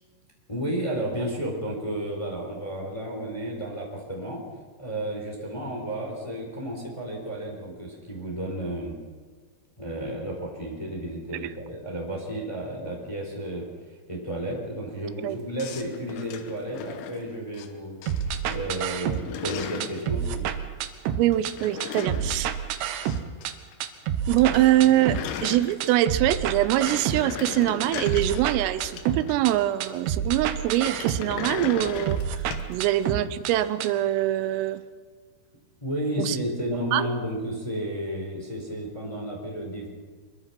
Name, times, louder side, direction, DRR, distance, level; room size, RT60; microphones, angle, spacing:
voice 1, 0.5-4.4 4.8-9.0 9.8-13.6 14.1-18.0 18.2-20.5 35.8-39.9, right 1 dB, 5° left, -1 dB, 3.4 m, -32 dB
sound 1, 15.6-17.7 18.0-18.6 18.8-20.0 21.3-23.5 23.7-23.8 24.1-24.2 24.4-26.1 26.5-29.6 30.7-32.7, left 8 dB, 75° left, 3.4 m, -37 dB
sound 2, 18.1-19.5 19.8-21.5 21.8-23.5 23.8-25.5 25.8-27.5 27.8-29.5 29.8-31.5 31.8-33.5 33.8-33.9, right 9 dB, 70° right, 2.9 m, -29 dB
voice 2, 21.2-22.5 24.3-34.8 36.2-36.4 36.9-37.1, right 14 dB, 90° right, 12 dB, 3.6 m, -24 dB
23.5 x 23.0 x 6.0 m, 1.5 s
omnidirectional pair, 5.8 m